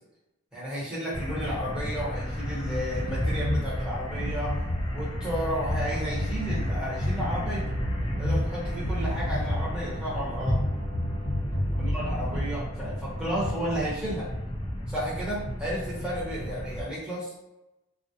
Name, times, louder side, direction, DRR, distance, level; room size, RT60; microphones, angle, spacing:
voice 1, 0.5-4.6 4.9-7.7 8.2-10.6 11.8-14.3 14.9-17.3, equal, 5° right, -8 dB, 0.7 m, -32 dB
sound 1, 1.1-16.8, equal, 25° left, 0.3 m, -33 dB
sound 2, 3.0-3.6 4.1-4.9 5.7-6.7 7.0-8.5 8.8-9.8 10.5-12.6, left 1 dB, 50° left, 0.9 m, -30 dB
sound 3, 5.8-12.7, equal, 60° right, 1.0 m, -39 dB
2.3 x 2.0 x 2.6 m, 0.97 s
head